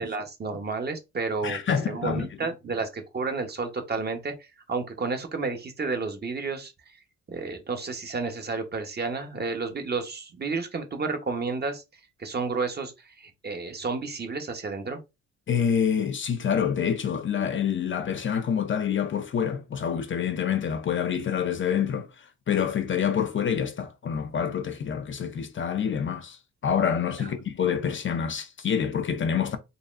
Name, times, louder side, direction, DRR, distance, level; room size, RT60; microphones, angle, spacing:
voice 1, 0.0-6.9 7.3-11.8 12.2-15.0 27.2-27.3, right 4 dB, 35° right, 0.9 m, -31 dB
voice 2, 1.4-2.3 15.5-22.1 22.5-26.4 26.6-29.6, left 7 dB, 40° left, 0.6 m, -27 dB
4.0 x 3.0 x 2.4 m
cardioid pair, 90°, 30 cm